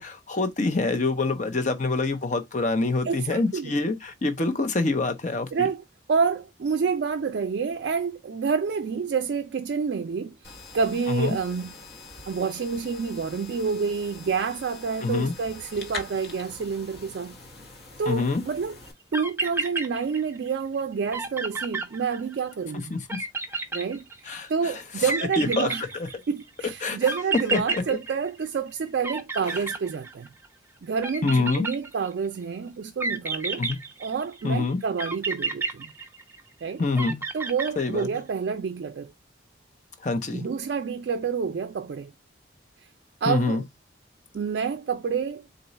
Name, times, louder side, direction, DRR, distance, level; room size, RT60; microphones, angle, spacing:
voice 1, 0.0-5.7 11.1-11.4 15.0-15.3 18.1-18.4 22.9-23.0 24.3-24.7 25.0-25.1 25.4-26.1 26.8-27.0 27.5-27.8 29.5-29.6 31.2-31.7 33.6-33.8 34.4-34.8 36.8-37.3 37.8-38.2 40.0-40.4 43.3-43.6, left 3 dB, 40° left, 0.6 m, -26 dB
voice 2, 3.0-3.7 5.5-10.4 10.7-11.7 12.3-17.4 18.0-18.8 19.1-23.0 23.7-25.8 26.3-30.3 30.8-33.6 34.0-35.9 36.6-36.8 37.3-39.1 40.3-42.1 43.2-43.6 44.3-45.4, right 5 dB, 60° right, 0.3 m, -28 dB
sound 1, 10.4-18.9, left 3 dB, 55° left, 1.0 m, -43 dB
sound 2, 18.9-19.0 19.1-20.5 20.8-20.9 21.1-22.5 23.1-24.5 25.1-26.4 27.1-28.7 29.0-30.5 31.0-32.3 33.0-34.4 35.0-36.5 37.0-38.2, right 4 dB, 10° right, 0.5 m, -31 dB
3.9 x 2.2 x 4.0 m
head